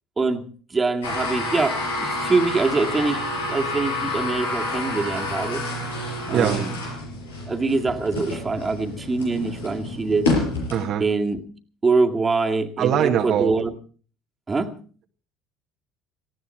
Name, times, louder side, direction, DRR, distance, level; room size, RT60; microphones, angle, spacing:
voice 1, 0.7-5.6 6.3-6.7 7.5-10.3 11.0-11.4 11.8-13.7 14.5-14.7, right 3 dB, 25° right, 3 dB, 2.2 m, -24 dB
sound 1, 1.0-10.9, left 2 dB, 90° left, 5.4 m, -28 dB
voice 2, 6.3-6.6 10.7-11.0 12.8-13.5, right 9 dB, 55° right, 4 dB, 1.5 m, -22 dB
18.5 x 15.5 x 4.5 m, 0.41 s
hypercardioid pair, 70°, 0 cm